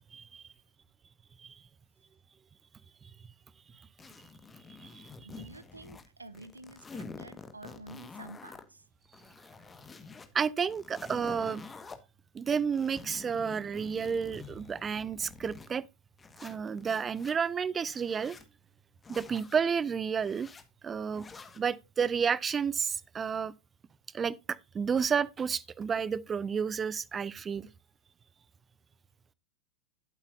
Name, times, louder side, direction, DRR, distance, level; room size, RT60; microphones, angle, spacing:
voice 1, 0.1-0.4 1.4-1.6 4.8-5.1 10.3-11.6 12.3-15.9 16.4-18.4 19.1-20.5 20.8-21.2 21.6-23.5 24.1-27.7, right 6 dB, 20° right, 0.5 m, -31 dB
sound 1, 4.0-6.1 6.3-8.6 9.0-10.3 10.7-12.0 12.5-15.7 16.2-17.3 17.8-18.5 19.0-19.6 20.2-20.6 21.1-21.6, left 4 dB, 15° left, 1.5 m, -48 dB
voice 2, 4.8-8.9, right 2 dB, 80° right, 1.0 m, -50 dB
12.0 x 8.2 x 2.6 m
figure-of-eight pair, 90°, 0 cm